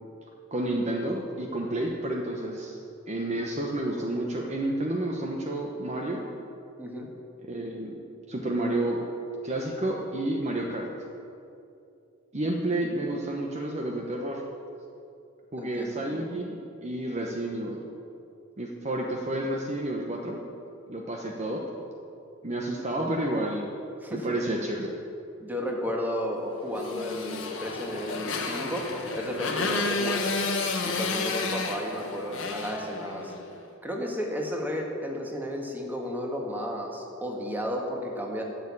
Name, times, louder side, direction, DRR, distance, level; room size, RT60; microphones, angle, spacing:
voice 1, 0.5-2.8 3.1-6.2 7.4-7.9 8.3-9.0 9.4-10.9 12.3-14.4 15.5-17.8 18.6-20.4 20.9-21.6 22.4-23.7 24.1-24.9, right 1 dB, 35° right, 0 dB, 1.0 m, -30 dB
voice 2, 6.8-7.1 15.6-16.3 24.0-24.4 25.4-28.9 29.2-30.2 30.8-33.3 33.8-38.4, equal, 10° right, 0 dB, 1.7 m, -33 dB
Motorcycle, 26.8-33.5, left 3 dB, 70° left, 1.4 m, -31 dB
12.5 x 6.8 x 8.7 m, 2.6 s
head